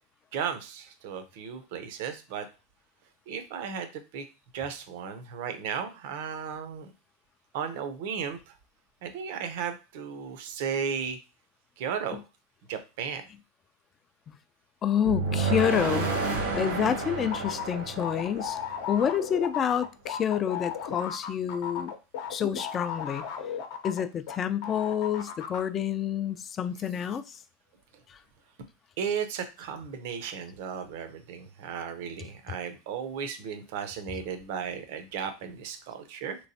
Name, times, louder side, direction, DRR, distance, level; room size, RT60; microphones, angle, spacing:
voice 1, 0.3-2.5 3.3-4.2 4.5-6.9 7.5-8.5 9.0-11.2 11.8-12.2 12.7-13.3 29.0-36.4, right 7 dB, 65° right, 0.6 m, -35 dB
voice 2, 14.8-16.1 16.5-18.6 18.9-21.9 22.3-23.3 23.8-27.4, left 9 dB, 30° left, 0.3 m, -28 dB
sound 1, 15.0-19.1, right 4 dB, 85° right, 1.1 m, -30 dB
sound 2, 17.3-24.4 24.6-25.6, left 8 dB, 65° left, 0.7 m, -35 dB
3.2 x 3.0 x 2.7 m
supercardioid pair, 120°, 0 cm